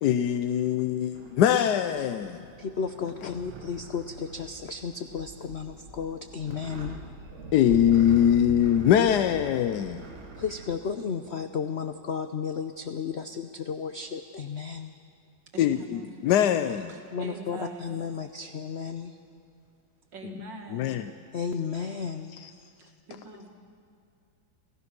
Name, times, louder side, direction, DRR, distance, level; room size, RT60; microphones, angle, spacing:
voice 1, 0.0-2.5 3.2-3.3 7.5-10.0 15.6-16.9 20.2-20.3 20.7-21.1 22.3-22.5, left 10 dB, 70° left, 9 dB, 1.1 m, -23 dB
sound 1, 1.1-10.7, right 2 dB, 85° right, 2.6 m, -46 dB
voice 2, 2.6-7.0 10.4-14.9 17.1-19.2 21.3-22.3, left 6 dB, 90° left, 8 dB, 0.5 m, -33 dB
sound 2, 7.2-11.4, right 3 dB, 45° right, 1.6 m, -41 dB
voice 3, 15.5-16.1 16.9-18.0 20.1-21.0 22.8-23.5, right 3 dB, 65° right, 2 dB, 2.6 m, -43 dB
29.0 x 15.5 x 6.0 m, 2.4 s
omnidirectional pair, 2.1 m